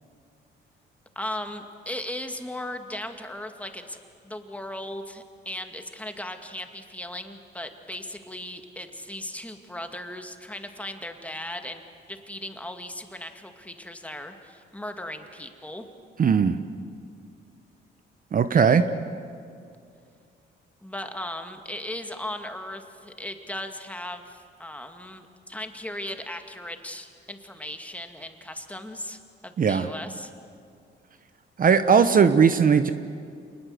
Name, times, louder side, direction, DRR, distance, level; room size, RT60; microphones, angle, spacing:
voice 1, 1.2-4.0 4.2-11.8 12.1-15.9 20.8-30.3, left 1 dB, 5° left, 6 dB, 2.2 m, -37 dB
voice 2, 16.2-16.6 18.3-18.8 29.6-29.9 31.6-32.9, right 6 dB, 45° right, 10 dB, 0.9 m, -18 dB
27.5 x 20.5 x 7.9 m, 2.3 s
cardioid pair, 90°, 20 cm